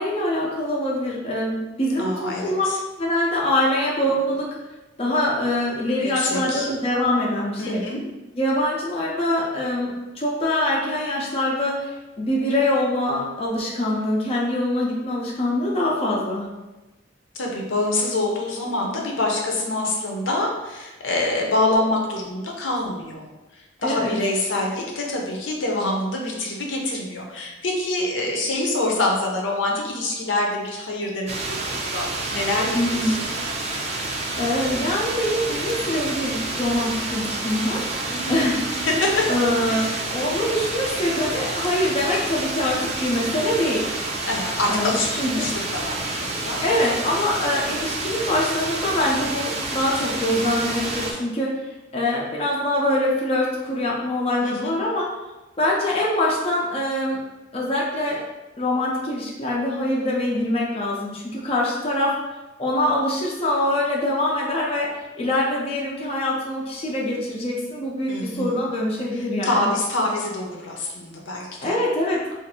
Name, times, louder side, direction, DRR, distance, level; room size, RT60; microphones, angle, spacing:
voice 1, 0.0-2.7 3.0-4.6 5.0-7.8 8.4-16.5 23.8-24.1 32.7-33.2 34.4-37.9 38.3-38.9 39.3-43.9 44.7-45.5 46.6-51.6 51.9-55.1 55.6-57.2 57.5-58.2 58.6-62.2 62.6-69.7 71.6-72.3, left 1 dB, 30° left, -4 dB, 0.5 m, -24 dB
voice 2, 2.0-2.8 6.0-6.7 7.6-8.0 17.3-23.3 23.8-33.3 38.1-38.4 38.9-39.2 39.7-39.9 44.2-46.6 54.4-54.7 68.1-68.6 69.1-71.8, left 2 dB, 75° left, 0 dB, 0.7 m, -26 dB
sound 1, 31.3-51.1, right 2 dB, 35° right, 0.5 m, -29 dB
2.6 x 2.5 x 4.1 m, 1.1 s
head